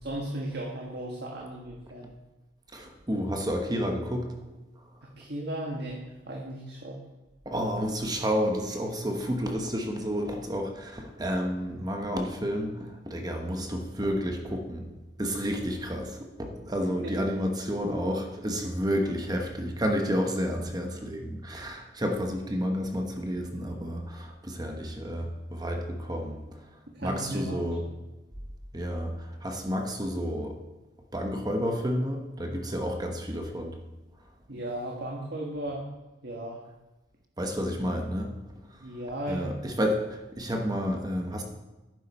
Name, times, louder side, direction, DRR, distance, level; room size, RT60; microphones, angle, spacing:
voice 1, 0.0-2.1 5.2-7.0 17.0-17.1 26.9-28.0 34.5-35.8 36.2-36.6 38.8-39.5, right 1 dB, 60° right, -1 dB, 1.5 m, -36 dB
voice 2, 2.7-4.3 7.4-14.9 15.2-26.4 27.0-27.8 28.7-30.6 31.1-33.7 37.4-38.3 39.3-41.4, equal, 20° right, 3 dB, 1.0 m, -30 dB
11.5 x 9.5 x 4.2 m, 1.1 s
head